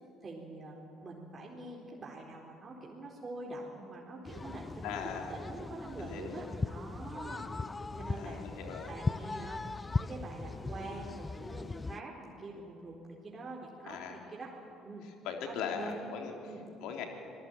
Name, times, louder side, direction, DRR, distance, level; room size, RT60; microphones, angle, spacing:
voice 1, 0.2-5.0 5.3-7.5 7.9-8.4 8.9-9.6 10.0-14.5 14.8-15.1 15.5-16.1 16.4-16.6, right 2 dB, 35° right, -2 dB, 4.1 m, -45 dB
sound 1, 4.2-12.0, left 3 dB, 25° left, 0.6 m, -38 dB
voice 2, 4.8-5.3 6.0-6.4 8.2-8.9 13.9-14.2 15.2-16.4 16.8-17.1, left 7 dB, 65° left, 3 dB, 3.5 m, -39 dB
25.5 x 18.5 x 9.0 m, 2.9 s
hypercardioid pair, 55°, 0 cm